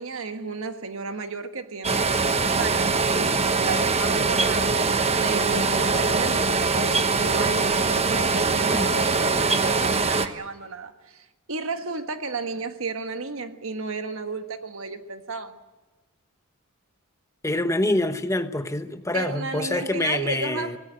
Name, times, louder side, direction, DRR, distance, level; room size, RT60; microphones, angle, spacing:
voice 1, 0.0-4.9 5.2-15.6 19.1-20.7, right 4 dB, 60° right, 1.6 m, -33 dB
sound 1, 1.8-10.3, right 4 dB, 30° right, 1.1 m, -22 dB
voice 2, 17.4-20.8, left 1 dB, 15° left, 1.0 m, -26 dB
25.5 x 18.0 x 7.7 m
head